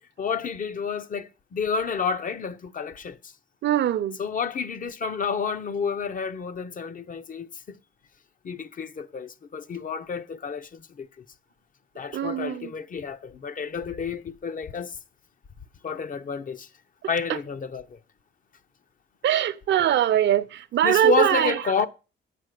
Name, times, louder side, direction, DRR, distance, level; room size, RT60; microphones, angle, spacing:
voice 1, 0.2-3.3 4.2-7.8 8.4-11.2 12.0-15.0 15.8-16.7 17.1-18.0 20.8-21.9, left 5 dB, 45° left, 0.8 m, -30 dB
voice 2, 3.6-4.2 12.1-12.7 19.2-21.5, right 11 dB, 65° right, 0.7 m, -22 dB
9.3 x 5.8 x 6.6 m
cardioid pair, 90°, 20 cm